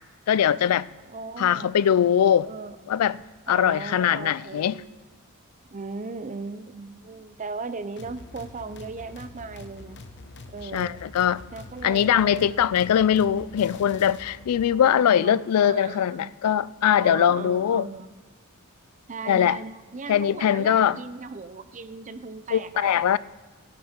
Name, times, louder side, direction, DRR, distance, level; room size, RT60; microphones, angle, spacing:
voice 1, 0.3-0.9 1.4-2.5 2.9-3.2 3.5-4.8 10.7-11.4 11.8-17.9 19.3-19.6 20.1-21.0 22.5-23.2, left 9 dB, 85° left, 0.3 m, -21 dB
voice 2, 1.0-1.7 2.4-2.8 3.5-4.9 5.7-10.0 10.5-11.0 11.5-12.8 14.7-16.3 17.0-18.1 19.1-23.0, right 4 dB, 35° right, 0.6 m, -38 dB
sound 1, 8.0-14.6, left 2 dB, 55° left, 0.9 m, -45 dB
16.0 x 8.5 x 4.4 m
head